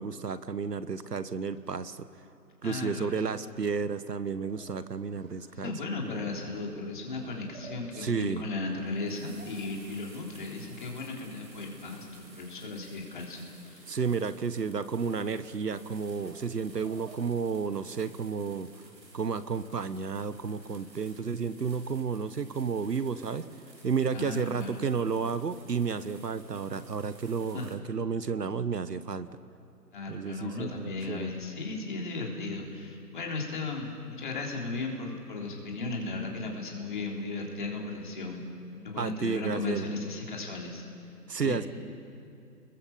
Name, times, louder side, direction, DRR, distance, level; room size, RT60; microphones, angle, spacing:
voice 1, 0.0-2.1 2.6-5.7 6.0-6.1 8.0-8.4 13.9-18.7 19.1-23.5 23.8-29.3 30.1-31.3 39.0-39.9 41.3-41.7, right 5 dB, 70° right, 13 dB, 1.3 m, -32 dB
voice 2, 2.6-3.2 5.5-13.8 24.1-24.9 27.5-27.7 29.9-38.4 38.7-40.8 41.4-41.6, left 3 dB, 30° left, -1 dB, 3.7 m, -36 dB
sound 1, 4.5-5.7 5.9-14.8 15.2-15.3 15.7-15.8 16.2-17.7, right 3 dB, 50° right, 3.2 m, -55 dB
sound 2, 8.9-27.8, right 2 dB, 90° right, 5.2 m, -56 dB
29.0 x 21.5 x 7.3 m, 2.6 s
hypercardioid pair, 170°, 50 cm